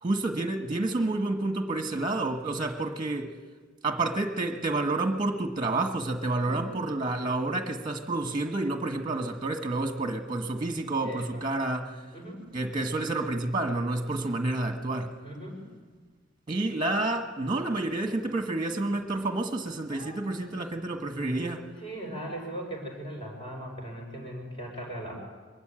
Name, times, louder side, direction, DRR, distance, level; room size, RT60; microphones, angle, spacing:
voice 1, 0.0-3.3 3.8-11.9 12.5-15.1 16.5-21.6, right 2 dB, 25° right, 6 dB, 1.5 m, -29 dB
voice 2, 11.0-11.4 12.1-12.4 15.2-15.6 19.9-20.2 21.8-25.1, right 1 dB, 30° left, 0 dB, 6.0 m, -39 dB
23.0 x 13.0 x 8.9 m, 1.4 s
head